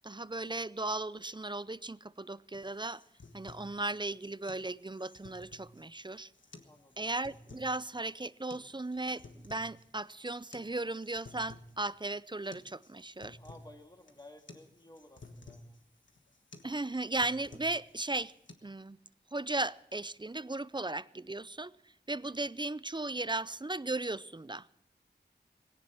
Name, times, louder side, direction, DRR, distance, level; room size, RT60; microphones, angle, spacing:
voice 1, 0.0-3.0 3.3-6.3 7.0-13.4 16.6-18.3 18.6-19.0 19.3-21.7 22.1-24.7, right 2 dB, 25° right, 0.5 m, -36 dB
sound 1, 2.5-18.5, left 2 dB, 85° left, 1.4 m, -55 dB
voice 2, 6.6-7.1 13.4-15.8, left 1 dB, 20° left, 2.4 m, -55 dB
18.0 x 16.5 x 4.4 m
wide cardioid pair, 40°, 19 cm